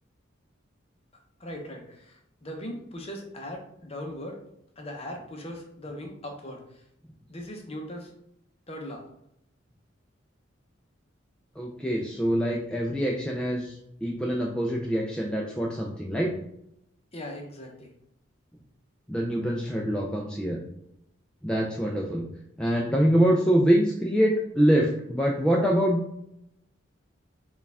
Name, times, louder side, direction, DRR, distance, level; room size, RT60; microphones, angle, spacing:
voice 1, 1.4-4.4 4.8-6.8 7.3-8.1 8.7-9.1 17.1-17.9, left 1 dB, 30° left, 2 dB, 0.7 m, -39 dB
voice 2, 11.6-16.3 19.1-20.6 21.4-22.2 22.6-26.0, equal, 5° left, -2 dB, 0.3 m, -25 dB
4.5 x 2.4 x 3.4 m, 0.78 s
head